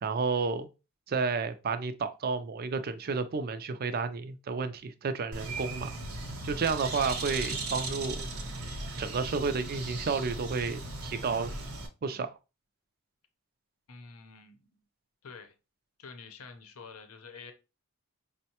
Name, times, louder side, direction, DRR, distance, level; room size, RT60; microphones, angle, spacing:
voice 1, 0.0-0.7 1.1-6.0 6.4-8.2 9.0-11.5 12.0-12.3, right 4 dB, 45° right, 0.4 m, -31 dB
Bird, 5.3-11.9, right 2 dB, 65° right, 0.9 m, -37 dB
voice 2, 13.9-14.7 15.2-15.5 16.0-17.5, left 5 dB, 75° left, 0.7 m, -48 dB
5.3 x 2.1 x 2.8 m
head